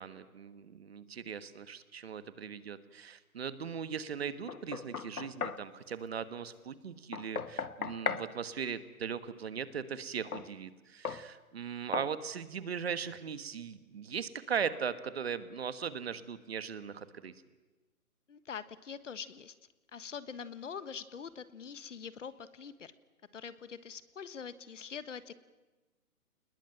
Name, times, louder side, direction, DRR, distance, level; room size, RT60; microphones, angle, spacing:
voice 1, 0.0-17.3, right 7 dB, 45° right, 14 dB, 1.4 m, -39 dB
Knock, 4.5-5.7 7.1-8.3 10.3-10.5 11.1-11.3 11.9-12.2, left 6 dB, 85° left, 1.7 m, -36 dB
voice 2, 18.3-19.5 19.9-22.9 23.3-25.3, left 6 dB, 55° left, 15 dB, 1.5 m, -44 dB
27.5 x 20.5 x 9.1 m, 1.2 s
hypercardioid pair, 170°, 43 cm